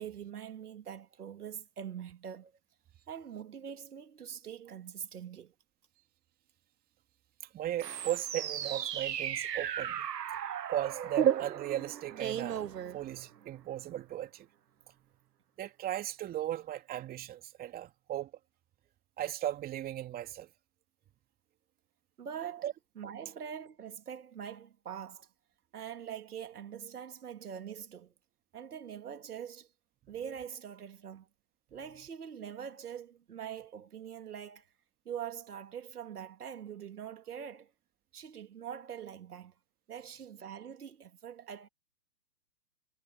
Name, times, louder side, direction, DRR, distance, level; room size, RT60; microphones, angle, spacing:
voice 1, 0.0-2.5 3.1-5.5 22.2-22.7 23.0-25.3 25.7-28.1 28.5-29.7 30.1-31.3 31.7-34.7 35.1-37.7 38.1-39.5 39.9-41.7, right 8 dB, 70° right, 2.5 m, -43 dB
voice 2, 7.5-10.1 10.7-12.7 12.9-14.5 15.6-18.3 19.2-20.5 22.6-22.7, right 12 dB, 20° right, 2.9 m, -37 dB
sound 1, 7.8-13.5, right 9 dB, 85° right, 0.8 m, -34 dB
hypercardioid pair, 130°, 47 cm